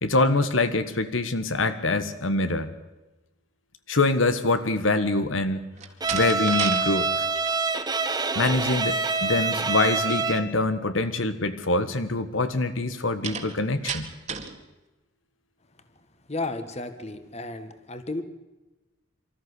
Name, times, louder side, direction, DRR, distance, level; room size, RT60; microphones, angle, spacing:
voice 1, 0.0-2.7 3.9-5.7 6.1-7.3 8.3-14.1, left 2 dB, 85° left, 11 dB, 1.4 m, -24 dB
Slam, 5.7-6.8 7.2-7.6 13.2-14.6, right 6 dB, 35° right, 2.2 m, -33 dB
Bowed string instrument, 6.0-10.6, right 4 dB, 20° right, 1.3 m, -26 dB
voice 2, 16.3-18.2, left 2 dB, 35° left, 10 dB, 1.7 m, -33 dB
25.0 x 14.0 x 8.2 m, 1.1 s
head